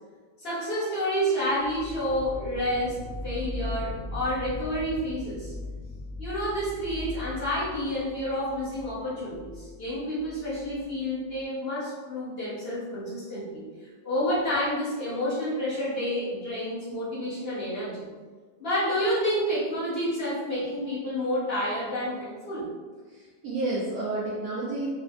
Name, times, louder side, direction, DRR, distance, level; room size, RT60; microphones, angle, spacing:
voice 1, 0.4-3.0 3.2-5.5 6.2-13.6 14.0-18.0 18.6-22.7, equal, 45° left, -10 dB, 0.8 m, -29 dB
sound 1, 1.6-11.4, left 2 dB, 85° left, 0.7 m, -39 dB
voice 2, 23.1-24.9, right 2 dB, 70° right, -7 dB, 1.0 m, -30 dB
4.2 x 2.1 x 2.4 m, 1.5 s
omnidirectional pair, 2.0 m